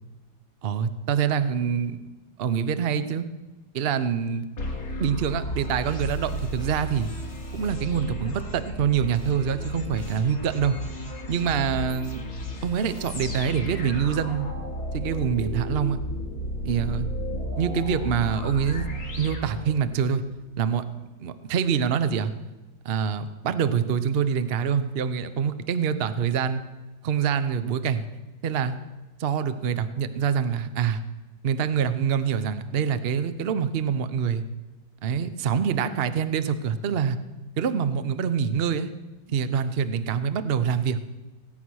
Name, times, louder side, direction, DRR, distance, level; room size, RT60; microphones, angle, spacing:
voice 1, 0.6-2.0 2.4-3.2 3.7-4.5 5.0-7.1 7.5-10.8 11.3-12.2 12.6-14.5 14.9-16.0 16.6-17.0 17.6-18.9 19.2-20.2 20.6-20.8 21.2-22.3 22.8-26.6 27.0-28.0 28.4-28.7 29.2-31.0 31.4-34.4 35.0-37.2 37.6-38.9 39.3-41.0, right 7 dB, 65° right, 11 dB, 0.6 m, -25 dB
sound 1, 4.6-20.2, equal, 45° left, 2.7 m, -33 dB
17.5 x 9.5 x 6.3 m, 1.1 s
omnidirectional pair, 2.2 m